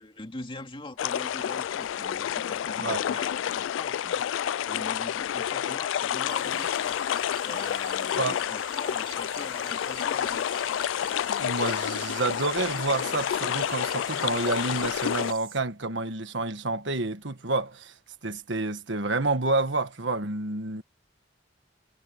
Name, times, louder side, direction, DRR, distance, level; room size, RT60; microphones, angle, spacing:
voice 1, 0.0-7.0 7.4-10.5, left 2 dB, 30° left, 2.3 m, -42 dB
sound 1, 1.0-15.3, left 10 dB, 85° left, 0.3 m, -29 dB
voice 2, 2.8-3.2 8.2-8.4 11.4-17.9 18.2-20.8, right 2 dB, 70° right, 1.6 m, -29 dB
sound 2, 6.2-15.6, right 12 dB, 55° right, 4.8 m, -46 dB
head